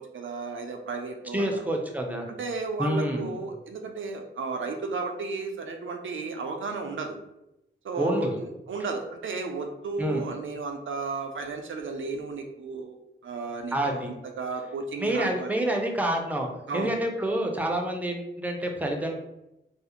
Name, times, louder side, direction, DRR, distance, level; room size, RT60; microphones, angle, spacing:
voice 1, 0.0-1.6 2.3-7.2 7.8-13.0 13.2-15.5 16.7-16.9, right 3 dB, 80° right, 4 dB, 0.4 m, -33 dB
voice 2, 1.3-2.3 2.8-3.3 8.0-8.4 10.0-10.2 13.7-14.1 15.0-16.5 16.7-19.1, right 1 dB, 10° right, 2 dB, 0.5 m, -28 dB
2.4 x 2.0 x 2.8 m, 0.90 s
cardioid pair, 60°, 20 cm